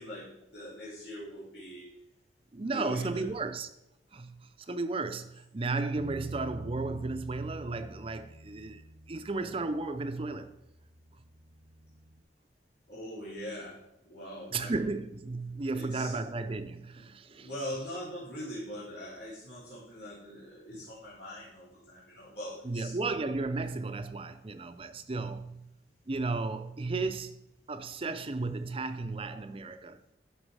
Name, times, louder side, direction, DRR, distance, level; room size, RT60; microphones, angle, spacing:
voice 1, 0.0-1.9 2.6-3.3 12.9-15.0 15.7-16.2 16.9-22.9, equal, 75° left, 3.6 m, -42 dB
voice 2, 2.5-3.7 4.1-10.5 14.5-17.5 22.6-25.7 26.1-27.3 27.7-30.0, right 3 dB, 30° right, 0.5 m, -34 dB
Bass guitar, 6.0-12.2, right 1 dB, 75° right, 0.7 m, -48 dB
11.5 x 5.4 x 4.8 m
head